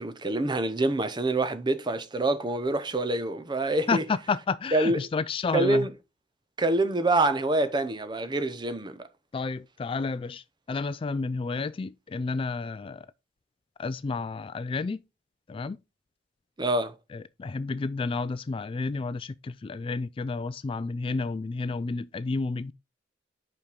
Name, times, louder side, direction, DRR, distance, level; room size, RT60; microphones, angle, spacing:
voice 1, 0.0-4.0 4.7-5.0 5.5-5.9 6.6-9.0 16.6-16.9, right 2 dB, 25° right, 0.7 m, -26 dB
voice 2, 3.9-5.9 9.3-13.1 13.8-15.0 15.5-15.8 17.1-22.7, left 4 dB, 30° left, 0.3 m, -31 dB
5.5 x 5.1 x 4.8 m
head